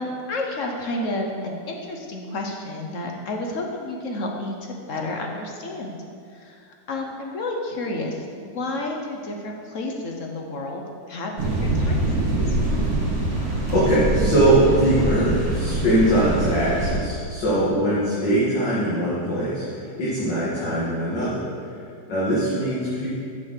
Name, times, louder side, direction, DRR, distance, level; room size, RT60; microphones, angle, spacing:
voice 1, 0.0-6.0 6.3-12.6 22.1-22.4, left 2 dB, 55° left, 1 dB, 1.1 m, -31 dB
sound 1, 11.4-16.9, right 2 dB, 20° right, 2.3 m, -24 dB
voice 2, 13.3-21.5 22.1-23.1, right 1 dB, 75° left, -10 dB, 2.7 m, -22 dB
7.3 x 6.6 x 6.6 m, 2.3 s
omnidirectional pair, 1.9 m